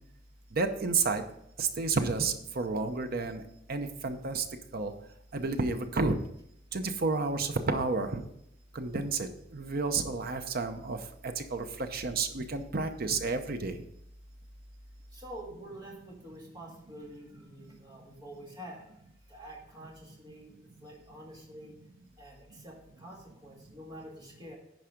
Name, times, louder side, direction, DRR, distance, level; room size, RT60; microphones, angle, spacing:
voice 1, 0.5-1.2 1.6-3.4 3.7-4.4 4.7-4.9 5.3-6.2 6.7-8.2 8.7-9.3 9.5-11.0 11.4-13.8, right 3 dB, 50° right, 8 dB, 0.8 m, -30 dB
voice 2, 15.1-18.9 19.3-21.8 22.2-24.6, right 1 dB, 20° right, -2 dB, 2.2 m, -47 dB
10.5 x 4.8 x 5.0 m, 0.77 s
head